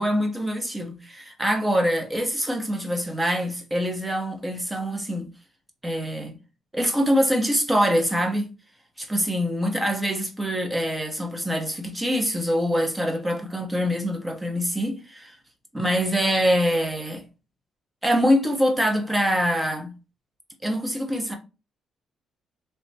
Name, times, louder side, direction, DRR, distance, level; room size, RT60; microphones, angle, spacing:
voice 1, 0.0-5.3 5.8-6.3 6.7-8.5 9.0-15.3 15.7-17.2 18.0-19.9 20.6-21.4, equal, 10° right, 0.9 m, -24 dB
3.4 x 2.8 x 2.7 m
cardioid pair, 90°, 0 cm